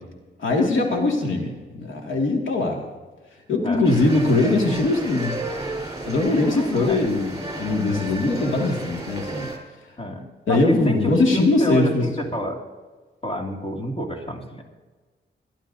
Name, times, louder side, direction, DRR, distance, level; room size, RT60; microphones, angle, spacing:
voice 1, 0.4-2.9 3.5-5.3 6.0-9.5 10.5-12.1, left 2 dB, 90° left, 0 dB, 2.1 m, -21 dB
sound 1, 3.8-9.6, right 2 dB, 20° right, 3.8 m, -33 dB
voice 2, 6.4-7.1 10.0-12.6 13.2-14.6, equal, 30° left, 0 dB, 2.4 m, -28 dB
24.0 x 12.0 x 2.7 m, 1.3 s
wide cardioid pair, 105°, 20 cm